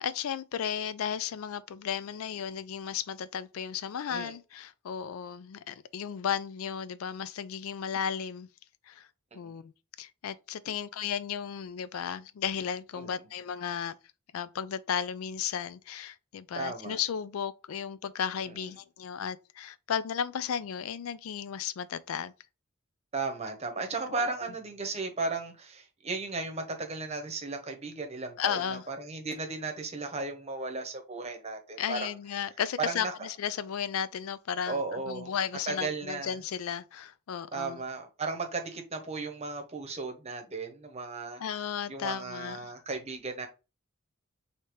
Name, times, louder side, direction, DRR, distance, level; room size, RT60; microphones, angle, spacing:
voice 1, 0.0-8.5 8.9-9.1 9.3-9.7 10.0-13.9 14.3-22.3 28.4-28.9 31.8-37.8 41.4-42.8, left 8 dB, 85° left, 0.4 m, -34 dB
voice 2, 16.5-17.0 23.1-32.1 32.9-33.1 34.7-35.3 35.7-36.4 37.5-41.4 41.9-43.5, right 3 dB, 30° right, 0.9 m, -35 dB
4.9 x 2.8 x 3.1 m
head